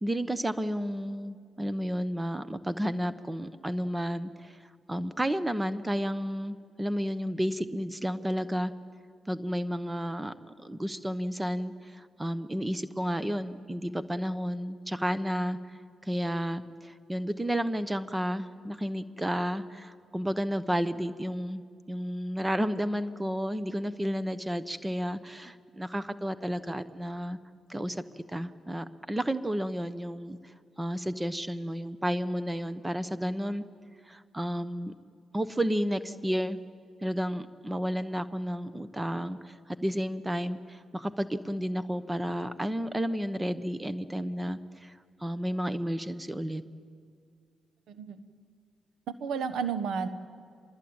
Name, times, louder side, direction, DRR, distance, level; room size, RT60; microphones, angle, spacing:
voice 1, 0.0-8.7 9.3-10.3 10.6-21.6 21.9-27.4 27.7-28.0 28.3-33.6 34.0-34.9 35.3-36.6 37.0-46.6, equal, 15° right, 13 dB, 1.0 m, -32 dB
voice 2, 49.1-50.1, right 6 dB, 80° right, 11 dB, 1.3 m, -32 dB
25.0 x 21.0 x 8.8 m, 2.1 s
supercardioid pair, 55°, 0 cm